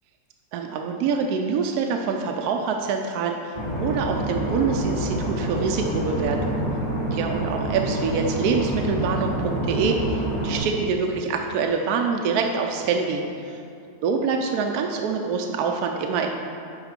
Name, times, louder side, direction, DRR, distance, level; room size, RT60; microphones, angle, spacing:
voice 1, 0.5-3.5 3.8-6.6 7.1-10.0 10.4-13.2 14.0-16.3, right 5 dB, 75° right, 3 dB, 1.1 m, -25 dB
sound 1, 3.5-10.6, right 1 dB, 25° left, 1.5 m, -27 dB
9.6 x 3.6 x 5.1 m, 2.4 s
omnidirectional pair, 1.7 m